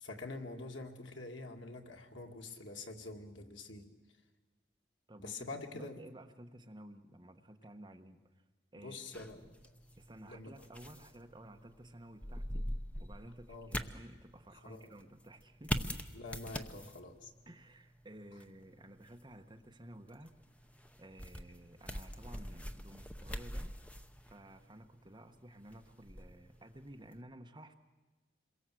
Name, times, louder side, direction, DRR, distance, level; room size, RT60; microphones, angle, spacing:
voice 1, 0.0-3.9 5.2-6.0 8.8-9.5 10.3-10.5 13.5-13.7 14.6-14.9 16.1-17.3, left 2 dB, 85° left, 3 dB, 2.2 m, -46 dB
voice 2, 5.1-8.2 8.7-9.5 10.0-12.7 13.0-15.9 17.5-20.3 21.0-23.7 24.3-27.7, right 1 dB, 25° right, 5 dB, 1.2 m, -54 dB
sound 1, 9.1-27.2, equal, 5° left, 0.8 m, -44 dB
27.5 x 22.5 x 7.8 m, 1.3 s
head